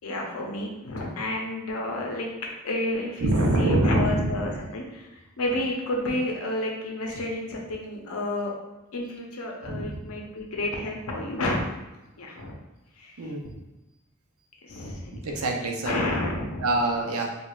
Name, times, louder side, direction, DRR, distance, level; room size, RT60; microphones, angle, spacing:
voice 1, 0.0-2.3 2.6-3.3 3.6-8.5 8.9-11.6 12.2-12.5 13.0-13.3 14.6-15.4 15.8-16.7, left 1 dB, 85° left, 0 dB, 0.7 m, -30 dB
voice 2, 3.2-4.5 9.6-10.0 13.2-13.6 15.2-16.0 16.6-17.3, right 1 dB, 90° right, 1 dB, 0.6 m, -25 dB
4.7 x 2.4 x 2.3 m, 1.0 s
head